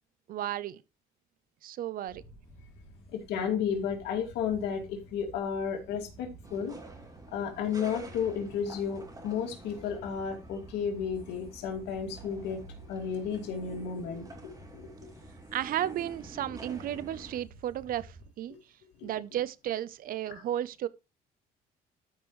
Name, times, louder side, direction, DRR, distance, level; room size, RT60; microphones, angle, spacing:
voice 1, 0.3-0.8 1.6-2.2 15.5-18.5 19.0-20.9, right 11 dB, 60° right, 0.6 m, -33 dB
sound 1, 2.1-18.3, right 1 dB, 30° left, 2.9 m, -52 dB
voice 2, 3.1-6.7 7.3-12.6 12.9-14.9 19.0-19.1 20.3-20.4, left 7 dB, 85° left, 2.3 m, -33 dB
sound 2, 6.4-17.4, right 2 dB, 20° right, 2.6 m, -49 dB
13.0 x 5.4 x 3.1 m
cardioid pair, 110°, 17 cm